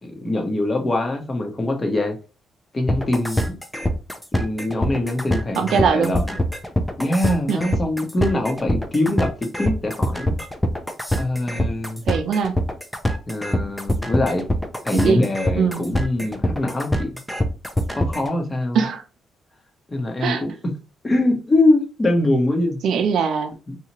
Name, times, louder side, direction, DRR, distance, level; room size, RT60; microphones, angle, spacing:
voice 1, 0.0-2.1 2.7-3.6 4.3-6.4 7.0-9.3 9.6-10.4 11.1-12.0 13.3-14.4 14.8-17.1 17.9-18.8 19.9-20.5 21.0-22.8 23.7-23.8, left 2 dB, 25° left, 0.9 m, -23 dB
sound 1, 2.9-18.3, equal, 5° left, 0.4 m, -23 dB
voice 2, 5.6-6.1 7.5-7.7 12.1-12.5 15.0-15.3 15.6-15.8 18.7-19.0 20.2-20.4 22.8-23.5, right 6 dB, 70° right, 0.5 m, -21 dB
2.8 x 2.4 x 3.0 m
cardioid pair, 90°, 0 cm